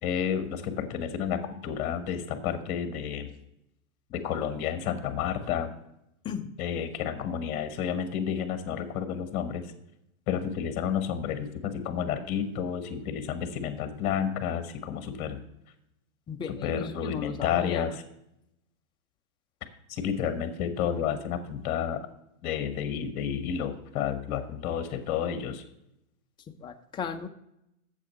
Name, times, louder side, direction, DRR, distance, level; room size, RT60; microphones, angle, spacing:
voice 1, 0.0-3.3 4.1-5.7 6.6-9.7 10.3-15.4 16.6-17.9 19.9-22.1 22.4-25.6, left 8 dB, 40° left, 9 dB, 1.4 m, -31 dB
voice 2, 16.3-18.0 26.5-27.3, left 7 dB, 10° left, 6 dB, 0.4 m, -36 dB
8.3 x 7.2 x 5.6 m, 0.82 s
hypercardioid pair, 120°, 43 cm